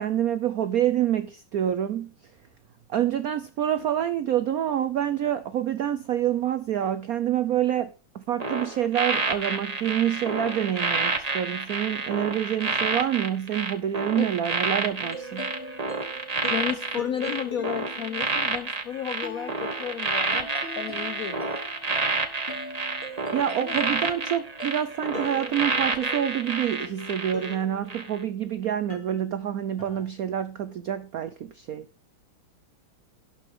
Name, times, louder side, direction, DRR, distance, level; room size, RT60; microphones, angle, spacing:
voice 1, 0.0-2.1 2.9-15.5 23.3-31.9, right 10 dB, 75° right, 0.8 m, -27 dB
sound 1, 8.4-27.5 27.9-28.2, right 4 dB, 20° right, 1.2 m, -29 dB
sound 2, 15.0-28.4 28.9-30.1, equal, 25° left, 2.8 m, -41 dB
voice 2, 16.5-20.5 20.8-21.5 23.6-23.9, left 8 dB, 70° left, 0.8 m, -33 dB
17.5 x 6.0 x 3.7 m
omnidirectional pair, 2.3 m